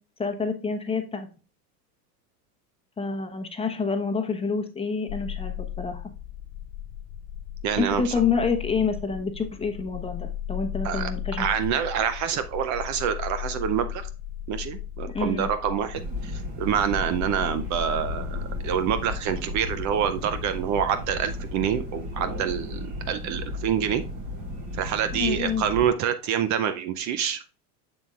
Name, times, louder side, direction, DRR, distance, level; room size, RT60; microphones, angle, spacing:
voice 1, 0.2-1.3 3.0-6.1 7.8-11.5 15.1-15.5 25.1-25.6, left 5 dB, 10° left, 5 dB, 0.9 m, -28 dB
sound 1, 5.1-20.2, left 11 dB, 70° left, 1.2 m, -36 dB
voice 2, 7.6-8.1 10.8-11.1 11.4-14.1 14.5-24.0 24.7-27.4, right 8 dB, 40° right, 11 dB, 0.6 m, -27 dB
sound 2, 15.9-25.9, left 1 dB, 65° right, 3.8 m, -35 dB
7.1 x 7.1 x 2.4 m, 0.34 s
supercardioid pair, 110°, 46 cm